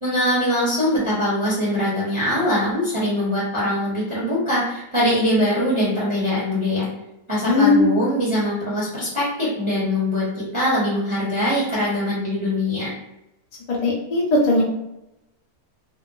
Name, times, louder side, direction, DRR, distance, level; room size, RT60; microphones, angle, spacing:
voice 1, 0.0-6.9 7.3-12.9, left 1 dB, 30° right, -9 dB, 0.6 m, -22 dB
voice 2, 7.5-7.9 13.7-14.6, left 2 dB, 45° left, -4 dB, 0.5 m, -18 dB
2.7 x 2.0 x 2.5 m, 0.89 s
omnidirectional pair, 1.6 m